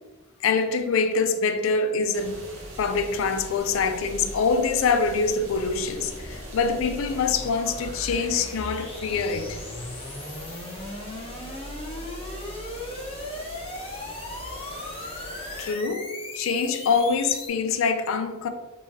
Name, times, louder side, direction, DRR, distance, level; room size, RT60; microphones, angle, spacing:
voice 1, 0.4-2.4 2.8-9.6 15.6-16.1 16.4-18.5, left 5 dB, 75° left, 0.4 m, -25 dB
sound 1, 2.1-15.7, equal, 85° right, 1.0 m, -41 dB
sound 2, 4.3-17.5, left 2 dB, 30° left, 0.5 m, -38 dB
3.5 x 2.8 x 3.0 m
head